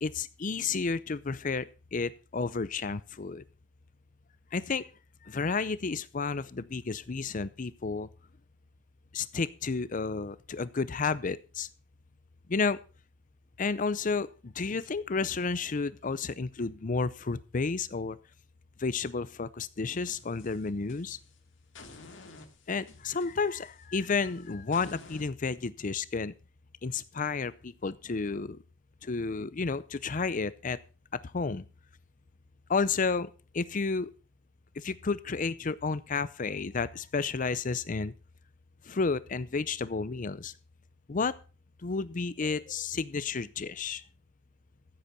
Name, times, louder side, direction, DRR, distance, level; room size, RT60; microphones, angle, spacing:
voice 1, 0.0-3.4 4.5-4.9 5.2-8.1 9.1-11.7 12.5-12.8 13.6-18.2 18.8-21.2 22.7-26.3 26.8-28.6 29.0-30.8 31.3-31.6 32.7-34.1 34.8-38.1 38.8-40.5 41.1-41.3 41.8-44.0, left 4 dB, 45° left, 17 dB, 0.6 m, -31 dB
sound 1, 19.9-21.3 21.7-25.3, left 3 dB, 80° left, 2.5 m, -52 dB
14.5 x 8.2 x 5.3 m, 0.34 s
head